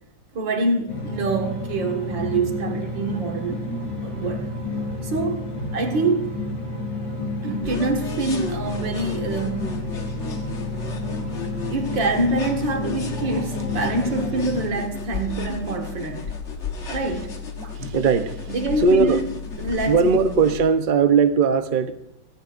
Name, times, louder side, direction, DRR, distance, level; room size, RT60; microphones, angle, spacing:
voice 1, 0.3-3.6 4.0-4.5 5.0-6.4 7.4-10.0 10.3-10.5 11.7-16.3 16.9-18.0 18.5-19.2 19.6-20.0, right 2 dB, 80° right, 2.4 m, -26 dB
sound 1, 0.9-14.6, left 2 dB, 90° left, 4.6 m, -30 dB
sound 2, 7.6-20.6, left 5 dB, 40° left, 1.5 m, -33 dB
voice 2, 17.8-18.4 18.8-19.2 19.9-21.9, right 5 dB, 45° right, 0.6 m, -19 dB
25.0 x 9.9 x 2.6 m
omnidirectional pair, 2.0 m